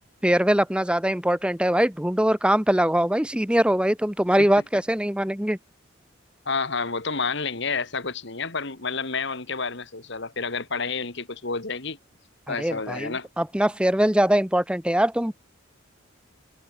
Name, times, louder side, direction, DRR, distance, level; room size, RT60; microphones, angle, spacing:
voice 1, 0.2-5.6 12.5-15.3, right 1 dB, 5° right, 1.0 m, -22 dB
voice 2, 6.5-12.0 12.5-13.3, left 4 dB, 60° left, 2.2 m, -29 dB
head